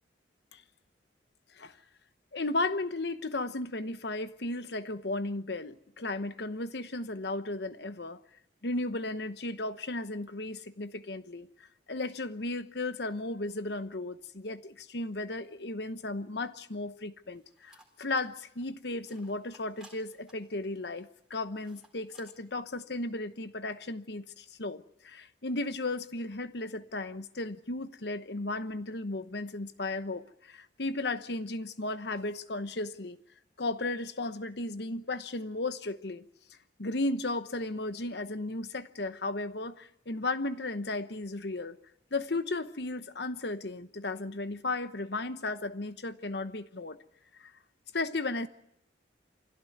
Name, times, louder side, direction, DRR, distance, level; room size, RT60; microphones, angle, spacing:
voice 1, 2.3-8.2 8.6-11.5 11.9-17.7 18.0-33.2 33.6-36.2 36.8-41.8 42.1-47.0 47.4-47.5 47.9-48.5, left 2 dB, 60° left, 1.0 m, -35 dB
sound 1, 17.3-22.5, right 2 dB, 5° right, 4.0 m, -61 dB
24.5 x 16.5 x 9.4 m
head